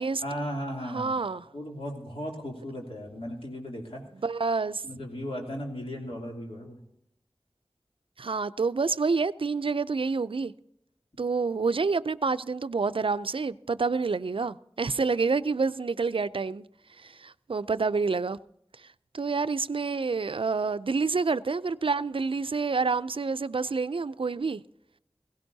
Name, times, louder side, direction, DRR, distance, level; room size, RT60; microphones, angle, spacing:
voice 1, 0.2-1.2 1.5-4.0 4.8-6.8, equal, 75° left, 2.9 m, -36 dB
voice 2, 0.9-1.5 4.2-4.8 8.2-10.5 11.2-16.6 17.0-18.4 19.1-24.6, right 4 dB, 65° right, 0.4 m, -28 dB
17.0 x 16.5 x 2.7 m
wide cardioid pair, 40°, 10 cm